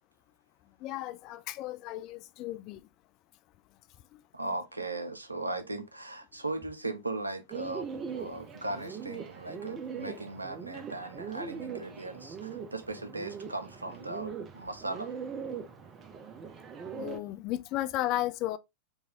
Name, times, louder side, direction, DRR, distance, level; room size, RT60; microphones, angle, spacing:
voice 1, 0.8-2.8 17.0-18.6, left 14 dB, 40° left, 0.4 m, -34 dB
voice 2, 4.3-7.9 8.2-15.1, right 2 dB, 80° right, 0.6 m, -38 dB
Bird, 7.5-17.2, right 6 dB, 25° right, 0.6 m, -41 dB
4.7 x 2.6 x 2.8 m
figure-of-eight pair, 90°, 0 cm